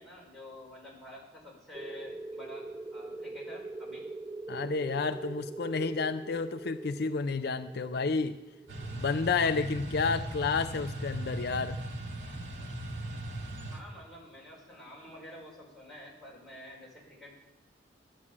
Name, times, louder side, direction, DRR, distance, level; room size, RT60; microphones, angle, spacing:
voice 1, 0.0-4.1 13.7-17.3, left 1 dB, ahead, -5 dB, 5.2 m, -49 dB
sound 1, 1.7-10.1, right 2 dB, 15° right, 0.3 m, -43 dB
voice 2, 4.5-8.4 8.9-11.8, left 4 dB, 60° left, 9 dB, 0.5 m, -30 dB
sound 2, 8.7-13.8, right 1 dB, 90° right, 2.1 m, -39 dB
12.5 x 9.6 x 7.4 m, 1.1 s
head